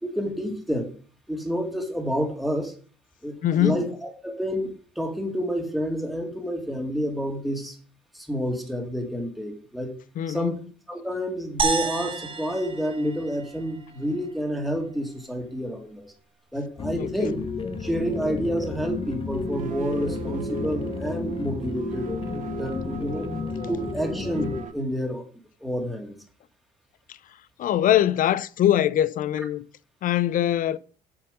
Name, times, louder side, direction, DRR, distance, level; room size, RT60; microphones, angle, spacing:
voice 1, 0.0-0.9 1.3-2.7 3.2-7.8 8.1-9.9 10.3-10.6 10.9-16.1 16.5-17.4 17.8-23.3 23.7-25.2 25.6-26.2, equal, ahead, 2.3 m, -29 dB
voice 2, 3.4-3.8 10.2-10.5 16.9-17.3 27.6-29.6 30.0-30.8, left 12 dB, 55° left, 0.5 m, -22 dB
sound 1, 11.6-14.0, right 4 dB, 30° right, 1.6 m, -30 dB
sound 2, 16.8-24.7, left 4 dB, 30° left, 1.1 m, -32 dB
sound 3, 17.5-24.7, right 12 dB, 50° right, 0.8 m, -39 dB
7.6 x 6.7 x 5.3 m
cardioid pair, 110°, 17 cm